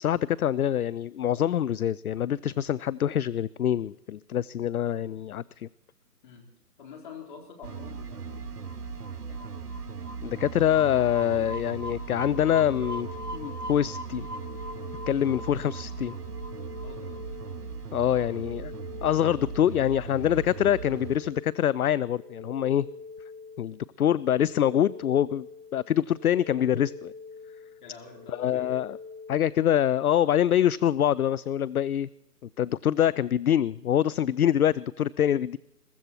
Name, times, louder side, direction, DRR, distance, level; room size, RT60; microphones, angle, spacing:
voice 1, 0.0-5.7 10.2-14.3 15.1-16.2 17.9-18.7 19.0-22.9 23.6-25.5 25.7-27.1 28.4-29.0 29.3-32.1 32.6-35.6, left 10 dB, 65° left, 21 dB, 0.5 m, -25 dB
voice 2, 6.8-8.4 9.2-9.5 15.3-15.5 16.8-17.2 18.1-18.3 27.8-28.7, left 5 dB, 30° left, 2 dB, 3.8 m, -47 dB
sound 1, 7.6-21.2, right 4 dB, 70° right, 1.5 m, -38 dB
sound 2, 11.9-29.5, left 4 dB, 10° right, 1.4 m, -46 dB
22.5 x 14.5 x 4.4 m, 0.86 s
hypercardioid pair, 165°, 48 cm